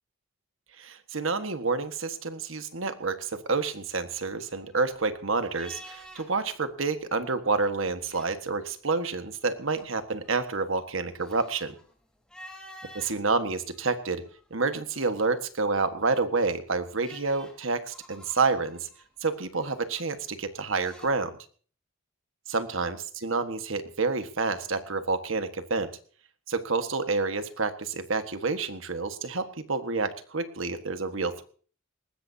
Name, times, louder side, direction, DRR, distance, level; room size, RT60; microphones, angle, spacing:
voice 1, 0.8-11.7 12.9-14.2 14.5-18.9 19.2-21.3 22.5-25.9 26.5-31.4, right 4 dB, 70° right, 9 dB, 1.6 m, -29 dB
sound 1, 4.2-6.5 6.8-7.0 7.8-8.7 9.2-13.2 13.7-14.7 16.2-21.1, equal, 5° left, 4.1 m, -51 dB
20.5 x 19.0 x 2.8 m, 0.43 s
head